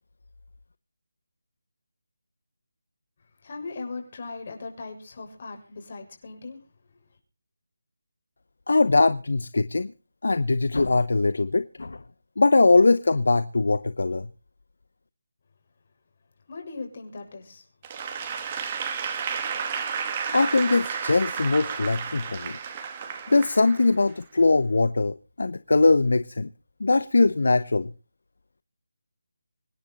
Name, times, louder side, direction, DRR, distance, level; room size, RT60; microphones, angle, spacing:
voice 1, 3.4-6.6 16.5-17.6 19.4-19.6, left 3 dB, 45° left, 6.9 m, -38 dB
voice 2, 8.7-9.9 10.2-12.0 12.4-14.3 20.3-22.6 23.3-26.5 26.8-27.9, left 3 dB, 65° left, 0.8 m, -21 dB
Applause / Crowd, 17.8-24.2, right 6 dB, 25° right, 2.5 m, -32 dB
25.5 x 10.5 x 4.1 m
figure-of-eight pair, 160°, 0 cm